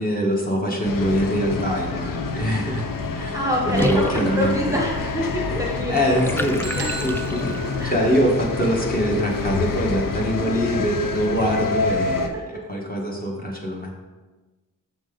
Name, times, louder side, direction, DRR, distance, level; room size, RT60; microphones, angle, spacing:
voice 1, 0.0-4.8 5.5-6.7 7.0-7.6 7.8-14.0, equal, 25° left, -2 dB, 1.2 m, -24 dB
sound 1, 0.8-12.3, left 4 dB, 75° left, 0.6 m, -27 dB
voice 2, 3.3-6.9 7.8-7.9, equal, 10° right, -2 dB, 1.0 m, -26 dB
Water / Bathtub (filling or washing), 3.7-7.8, equal, 5° left, 0.3 m, -33 dB
sound 2, 6.6-8.6, right 5 dB, 50° right, 0.6 m, -36 dB
6.8 x 5.2 x 3.8 m, 1.2 s
wide cardioid pair, 145°, 34 cm